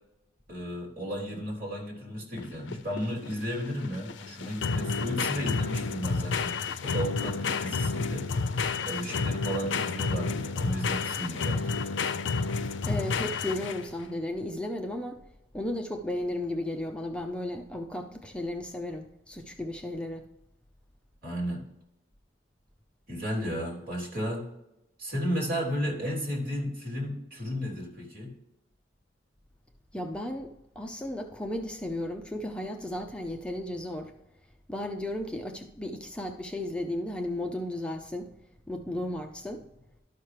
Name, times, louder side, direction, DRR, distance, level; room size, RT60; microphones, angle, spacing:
voice 1, 0.5-6.5 6.8-8.3 8.8-11.8 21.2-21.6 23.1-24.4 25.0-28.3, equal, 50° right, 3.3 m, -33 dB
sound 1, 2.4-14.0, left 4 dB, 75° left, 0.5 m, -30 dB
voice 2, 12.9-15.2 15.5-20.3 29.9-34.1 34.7-38.3 38.7-39.7, left 1 dB, 5° left, 0.5 m, -34 dB
12.5 x 5.8 x 3.3 m
head